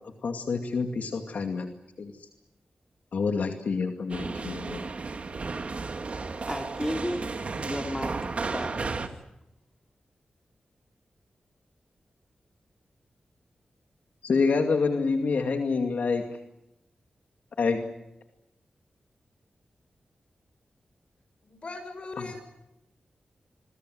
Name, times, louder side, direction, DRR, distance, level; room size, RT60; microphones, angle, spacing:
voice 1, 0.0-1.7 2.0-2.1 3.1-4.8 14.2-16.2 17.6-17.8, left 4 dB, 75° left, 2.4 m, -27 dB
sound 1, 4.1-9.1, right 4 dB, 50° right, 2.2 m, -33 dB
voice 2, 6.5-9.0, equal, 10° left, 3.2 m, -34 dB
voice 3, 21.4-22.4, left 3 dB, 45° left, 6.8 m, -39 dB
26.5 x 22.5 x 7.8 m
wide cardioid pair, 115°, 3 cm